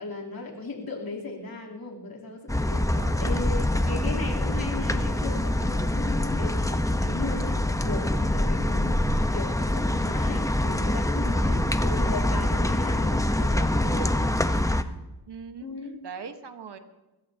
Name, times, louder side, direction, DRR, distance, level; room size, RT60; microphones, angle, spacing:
voice 1, 0.0-2.9 3.2-14.2 15.6-15.9, left 3 dB, 60° left, -2 dB, 3.3 m, -36 dB
sound 1, 2.5-14.8, left 1 dB, 10° left, 0.9 m, -25 dB
voice 2, 2.9-4.0 15.3-15.7 16.0-16.8, right 6 dB, 80° right, 7 dB, 1.3 m, -41 dB
21.5 x 16.0 x 2.8 m, 1.0 s
cardioid pair, 50°, 41 cm